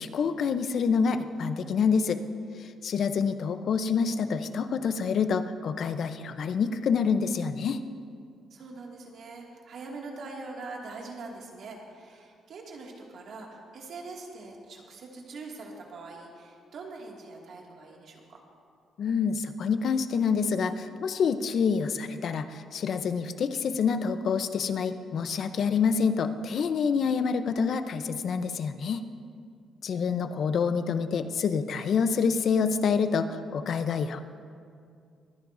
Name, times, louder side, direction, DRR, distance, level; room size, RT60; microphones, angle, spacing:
voice 1, 0.0-2.2 2.6-7.8 19.0-29.0 29.8-34.2, left 6 dB, 60° left, 10 dB, 0.7 m, -27 dB
voice 2, 8.5-18.4, right 3 dB, 65° right, -1 dB, 2.2 m, -43 dB
23.5 x 10.5 x 2.7 m, 2.3 s
cardioid pair, 90°, 0 cm